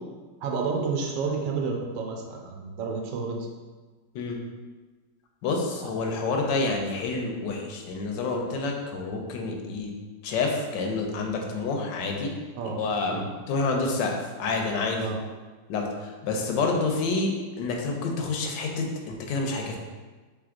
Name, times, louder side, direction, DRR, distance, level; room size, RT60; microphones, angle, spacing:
voice 1, 0.4-3.4 5.8-5.9 12.5-12.8 13.1-13.3 15.0-15.2, right 5 dB, 80° right, 1 dB, 1.2 m, -30 dB
voice 2, 5.4-9.9 10.2-12.3 12.6-15.1 15.7-19.8, left 3 dB, 85° left, 2 dB, 1.3 m, -28 dB
3.4 x 3.4 x 3.7 m, 1.3 s
omnidirectional pair, 1.9 m